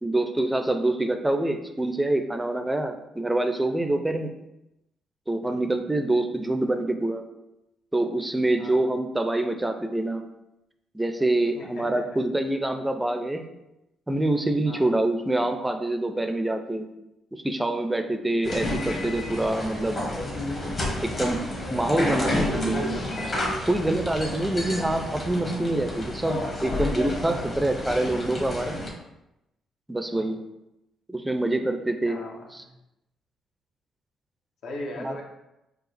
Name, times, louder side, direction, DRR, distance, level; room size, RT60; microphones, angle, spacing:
voice 1, 0.0-4.3 5.3-7.2 7.9-10.3 10.9-13.5 14.1-16.9 17.3-20.0 21.0-21.4 21.7-22.8 23.2-23.3 23.7-28.8 29.9-30.4 31.1-32.2 32.5-32.6 35.0-35.1, right 1 dB, 10° right, 6 dB, 0.4 m, -26 dB
voice 2, 11.5-12.2 14.6-14.9 30.1-30.3 32.0-32.7 34.6-35.2, left 2 dB, 75° left, 1 dB, 0.8 m, -39 dB
sound 1, 18.4-28.9, left 1 dB, 40° left, 1.1 m, -30 dB
4.6 x 2.4 x 3.3 m, 0.90 s
cardioid pair, 90°, 0 cm